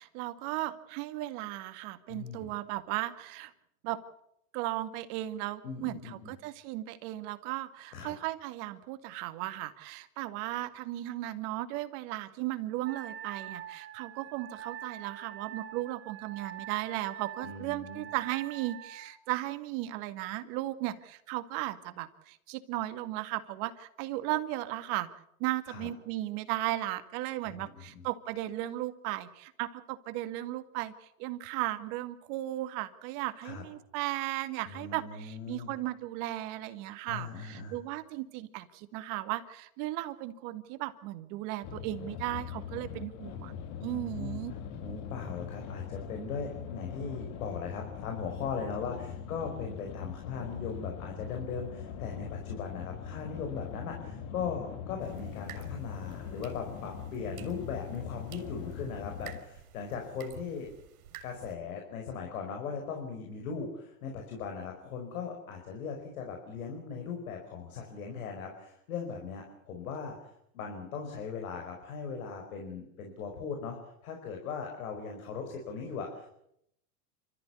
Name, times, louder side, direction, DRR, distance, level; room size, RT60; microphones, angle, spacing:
voice 1, 0.0-3.5 3.8-4.0 4.5-25.1 25.4-43.5 43.8-44.5, right 16 dB, 55° right, 10 dB, 2.2 m, -36 dB
voice 2, 2.1-2.5 5.6-6.3 7.9-8.1 17.4-18.1 25.6-25.9 27.4-28.1 33.4-33.6 34.6-35.7 37.1-37.8 43.8-44.4 44.8-60.7 61.2-76.3, left 5 dB, 75° left, 2 dB, 5.2 m, -39 dB
Wind instrument woodwind instrument, 12.8-19.2, right 10 dB, 30° right, 1.7 m, -45 dB
sound 1, 41.6-59.4, left 8 dB, 55° left, 2.7 m, -42 dB
sound 2, 55.0-61.6, right 10 dB, 75° right, 4.0 m, -52 dB
28.0 x 14.0 x 8.4 m, 0.75 s
hypercardioid pair, 105°, 43 cm